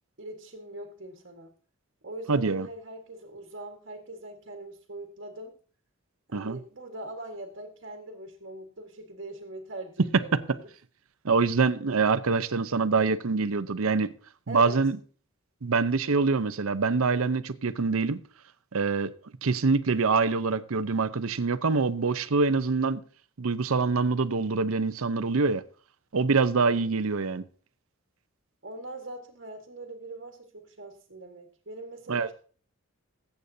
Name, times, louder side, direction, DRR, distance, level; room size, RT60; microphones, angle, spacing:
voice 1, 0.2-1.5 2.0-5.6 6.3-10.7 14.5-14.8 26.7-26.9 28.6-32.3, right 2 dB, 55° right, 1.5 m, -42 dB
voice 2, 2.3-2.7 6.3-6.6 11.2-14.1 14.5-15.0 15.6-18.2 18.7-19.1 19.4-23.0 23.4-25.6 26.1-27.4 32.1-32.3, right 4 dB, 75° right, 0.7 m, -25 dB
20.5 x 8.1 x 2.7 m
head